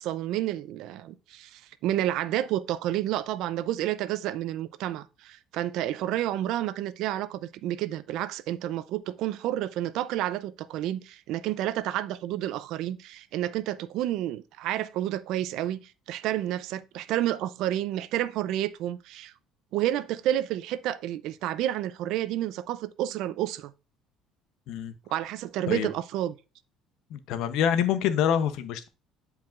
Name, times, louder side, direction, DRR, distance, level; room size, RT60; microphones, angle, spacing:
voice 1, 0.0-19.3 19.7-23.7 25.1-26.4, right 13 dB, 70° right, 0.5 m, -30 dB
voice 2, 27.1-28.9, left 9 dB, 70° left, 0.7 m, -26 dB
10.5 x 4.8 x 2.5 m
cardioid pair, 130°, 0 cm